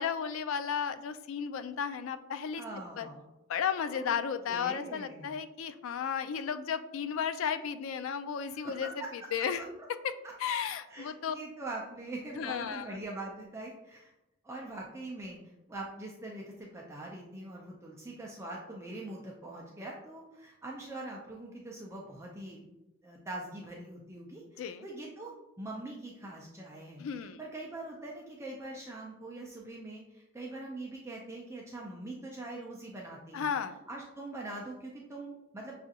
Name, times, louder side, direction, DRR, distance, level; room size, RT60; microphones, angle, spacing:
voice 1, 0.0-2.6 3.0-3.1 3.5-9.6 10.0-10.1 10.4-11.4 12.4-12.9 24.6-24.9 27.0-27.4 33.3-33.8, left 7 dB, 75° left, 10 dB, 0.3 m, -34 dB
voice 2, 2.5-3.2 3.9-4.2 4.5-5.4 8.5-9.1 10.9-14.1 14.4-15.4 15.7-22.7 23.0-27.0 27.4-33.5 33.9-35.7, right 2 dB, 15° right, -2 dB, 0.4 m, -43 dB
5.8 x 2.4 x 2.7 m, 0.94 s
head